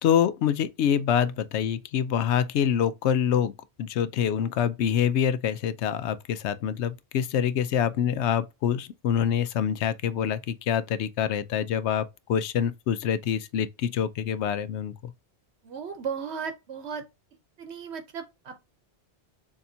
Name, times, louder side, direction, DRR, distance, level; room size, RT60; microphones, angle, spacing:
voice 1, 0.0-3.5 3.8-15.1, left 9 dB, 80° left, 0.8 m, -26 dB
voice 2, 15.6-17.1 17.6-18.6, right 6 dB, 75° right, 1.0 m, -35 dB
6.9 x 2.8 x 2.6 m
omnidirectional pair, 1.1 m